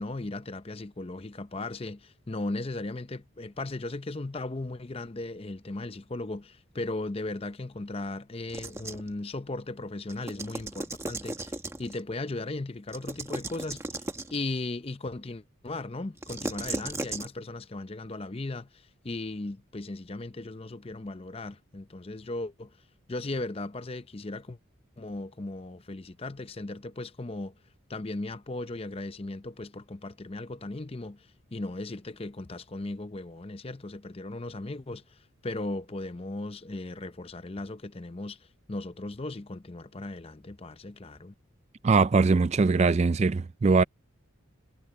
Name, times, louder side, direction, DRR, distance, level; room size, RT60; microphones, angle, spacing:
voice 1, 0.0-14.0 14.3-22.7 23.1-24.6 25.0-27.5 27.9-41.3, left 2 dB, 25° left, 0.6 m, -37 dB
sound 1, 8.5-9.1 10.1-12.0 12.9-14.4 16.2-17.3, right 2 dB, 15° right, 1.2 m, -36 dB
voice 2, 41.8-43.8, right 4 dB, 30° right, 0.3 m, -21 dB
head